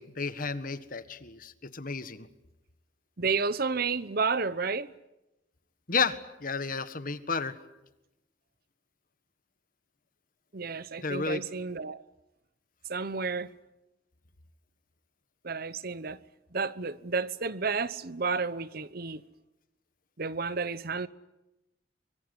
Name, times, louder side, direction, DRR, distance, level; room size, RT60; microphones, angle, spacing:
voice 1, 0.0-2.3 5.9-7.6 11.0-11.4, left 4 dB, 50° left, 1.6 m, -32 dB
voice 2, 3.2-4.9 10.5-12.0 12.9-13.5 15.4-16.2 16.5-19.2 20.2-21.1, right 4 dB, 50° right, 1.0 m, -31 dB
24.5 x 23.5 x 9.8 m
head